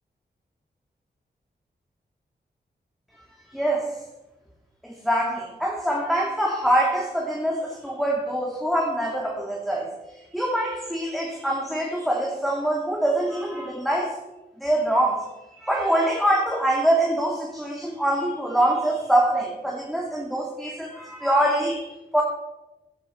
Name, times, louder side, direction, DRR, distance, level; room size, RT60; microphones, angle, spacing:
voice 1, 3.5-3.9 4.8-9.9 10.3-14.2 14.6-15.2 15.6-22.2, right 1 dB, ahead, -2 dB, 2.5 m, -24 dB
15.5 x 12.5 x 4.5 m, 1.0 s
cardioid pair, 75°, 18 cm